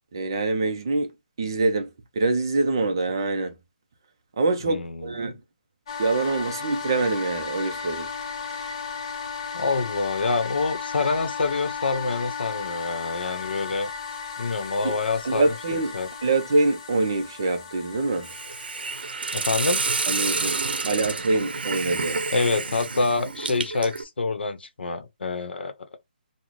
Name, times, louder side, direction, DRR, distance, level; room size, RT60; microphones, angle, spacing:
voice 1, 0.1-3.6 4.4-5.4 6.0-8.1 8.5-8.7 14.8-15.0 15.2-18.3 20.1-20.6 20.9-22.2, right 3 dB, 25° right, 0.4 m, -25 dB
voice 2, 4.7-5.3 9.5-13.9 14.4-16.1 19.3-19.8 22.3-25.7, left 3 dB, 85° left, 0.7 m, -27 dB
sound 1, 5.9-22.6, left 6 dB, 30° left, 0.7 m, -36 dB
Hiss, 18.2-24.0, right 4 dB, 70° right, 0.6 m, -29 dB
3.0 x 2.0 x 3.8 m
hypercardioid pair, 180°, 5 cm